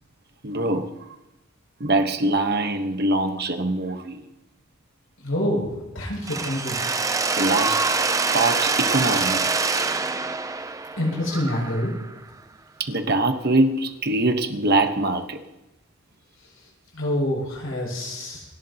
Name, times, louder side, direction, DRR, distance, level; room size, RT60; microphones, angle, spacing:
voice 1, 0.4-0.9 1.8-4.2 7.4-7.8 8.3-9.4 12.8-15.4, right 2 dB, 50° right, 1.2 m, -23 dB
voice 2, 5.2-6.8 11.0-11.9 16.9-18.4, left 1 dB, 70° left, 6.8 m, -26 dB
Mechanisms, 6.3-12.1, right 4 dB, 15° right, 0.5 m, -25 dB
28.5 x 12.0 x 2.9 m
head